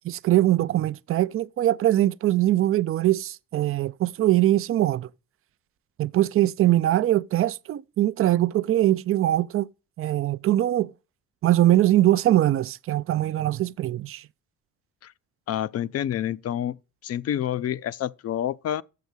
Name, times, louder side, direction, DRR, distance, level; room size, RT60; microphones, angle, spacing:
voice 1, 0.1-5.1 6.0-9.7 10.0-10.9 11.4-14.2, right 14 dB, 45° right, 0.4 m, -22 dB
voice 2, 15.5-16.8 17.0-18.8, left 11 dB, 55° left, 0.5 m, -28 dB
7.1 x 6.8 x 6.1 m
cardioid pair, 90°, 30 cm